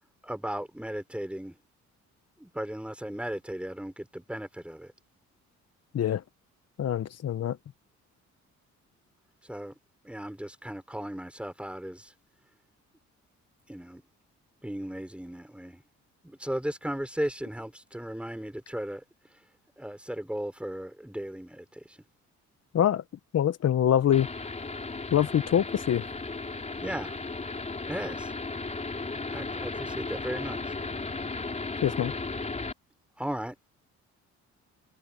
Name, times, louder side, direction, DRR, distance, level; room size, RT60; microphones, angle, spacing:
voice 1, 0.2-1.5 2.4-4.9 9.5-9.7 10.0-12.1 13.7-14.0 14.6-15.8 16.2-19.0 19.8-22.0 26.8-27.1 27.9-28.3 29.3-30.8 33.2-33.6, equal, 5° right, 5.7 m, -36 dB
voice 2, 6.8-7.6 22.7-23.0 23.3-24.3 25.1-26.0 31.8-32.1, left 10 dB, 55° left, 1.2 m, -24 dB
sound 1, 24.1-32.7, left 3 dB, 25° left, 3.6 m, -35 dB
cardioid pair, 90°, 30 cm